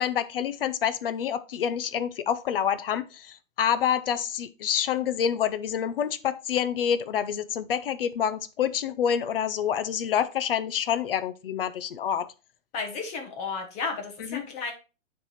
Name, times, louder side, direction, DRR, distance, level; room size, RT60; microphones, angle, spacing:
voice 1, 0.0-12.3 14.3-14.4, left 8 dB, 45° left, 0.5 m, -27 dB
voice 2, 12.7-14.7, left 4 dB, 15° left, 1.0 m, -33 dB
9.7 x 3.4 x 4.1 m
hypercardioid pair, 155°, 41 cm